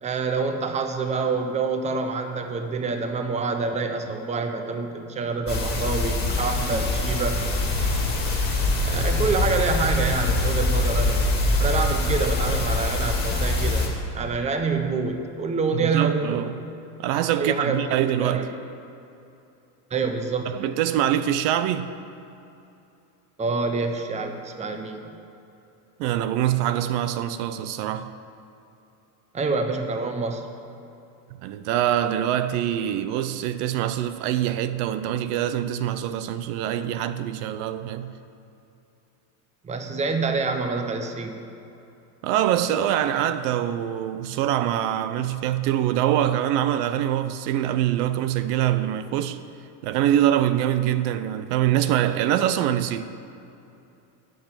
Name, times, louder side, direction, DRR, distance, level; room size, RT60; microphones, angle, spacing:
voice 1, 0.0-7.4 8.8-11.3 11.6-13.9 14.1-16.5 17.4-18.5 19.9-20.7 23.4-25.1 29.3-30.4 39.6-41.4, right 4 dB, 15° right, 0.7 m, -27 dB
sound 1, 5.5-13.9, left 2 dB, 20° left, 2.5 m, -24 dB
voice 2, 15.7-16.5 17.0-18.4 20.6-21.9 26.0-28.1 31.4-38.1 42.2-49.4 49.8-53.1, right 11 dB, 70° right, 0.8 m, -24 dB
10.0 x 6.6 x 8.9 m
supercardioid pair, 130°, 49 cm